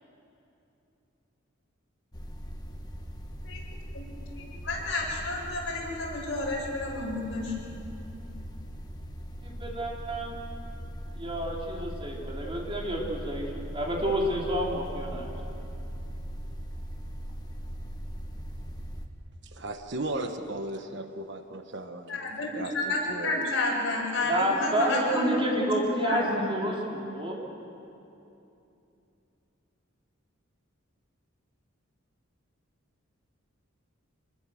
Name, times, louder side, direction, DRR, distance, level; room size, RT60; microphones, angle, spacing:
sound 1, 2.1-19.1, equal, 20° left, 1.5 m, -40 dB
voice 1, 4.3-7.5 22.1-26.6, left 2 dB, 60° left, -4 dB, 7.5 m, -30 dB
voice 2, 9.4-10.3 11.1-15.3 24.2-27.3, right 1 dB, 25° right, -2 dB, 3.8 m, -29 dB
voice 3, 19.4-22.2 22.5-23.5, right 1 dB, 55° right, 7 dB, 1.3 m, -36 dB
26.0 x 20.5 x 7.7 m, 2.8 s
head